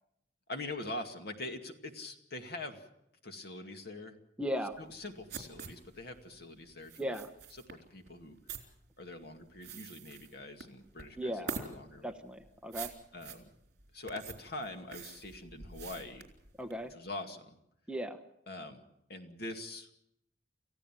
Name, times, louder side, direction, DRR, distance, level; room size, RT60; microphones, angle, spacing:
voice 1, 0.5-2.9 3.2-4.2 4.8-7.2 7.5-8.4 9.0-12.1 13.1-13.5 13.9-16.3 16.9-17.6 18.5-18.8 19.1-19.9, left 2 dB, 55° left, 5 dB, 2.3 m, -44 dB
voice 2, 4.4-4.8 7.0-7.3 11.2-11.7 12.0-12.9 16.6-16.9 17.9-18.2, equal, 5° right, 6 dB, 1.0 m, -37 dB
sound 1, 4.7-16.9, right 5 dB, 55° right, 3.7 m, -46 dB
28.5 x 15.5 x 7.5 m, 0.78 s
head